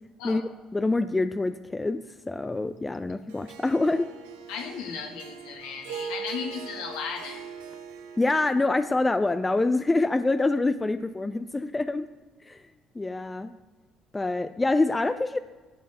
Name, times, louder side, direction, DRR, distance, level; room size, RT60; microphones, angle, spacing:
voice 1, 0.7-4.1 8.2-12.1 12.5-12.6 12.9-13.5 14.1-15.4, left 2 dB, 20° left, 10 dB, 0.7 m, -26 dB
Harp, 3.3-9.7, right 7 dB, 75° right, 1.1 m, -41 dB
voice 2, 4.5-7.4, left 6 dB, 70° left, 3 dB, 1.9 m, -35 dB
14.0 x 5.5 x 8.0 m, 1.3 s
figure-of-eight pair, 50°, 0 cm